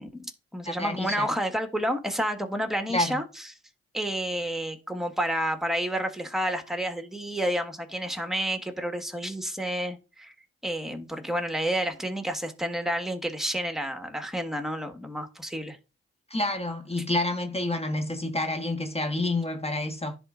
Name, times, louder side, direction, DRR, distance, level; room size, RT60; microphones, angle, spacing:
voice 1, 0.0-3.5 3.9-10.3 10.6-15.8, equal, ahead, 1.5 m, -30 dB
voice 2, 0.7-1.3 2.9-3.2 16.3-20.2, left 2 dB, 20° left, 1.2 m, -28 dB
10.5 x 3.7 x 2.5 m
hypercardioid pair, 45°, 32 cm